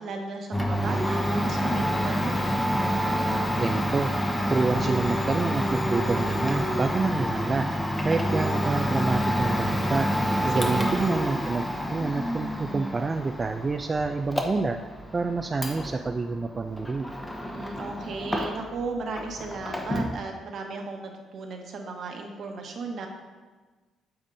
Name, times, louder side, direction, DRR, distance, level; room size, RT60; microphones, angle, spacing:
voice 1, 0.0-2.5 10.5-11.1 17.4-23.1, right 3 dB, 65° right, 2 dB, 1.2 m, -35 dB
Domestic sounds home sounds, 0.5-18.8 19.1-20.2, equal, 15° left, 1.0 m, -28 dB
voice 2, 3.6-4.1 4.5-7.7 8.0-10.1 10.4-14.8 15.1-17.1, right 3 dB, 30° right, 6 dB, 0.3 m, -27 dB
sound 1, 17.9-18.4, right 3 dB, 85° right, 2.1 m, -48 dB
8.7 x 7.1 x 2.7 m, 1.3 s
cardioid pair, 80°, 0 cm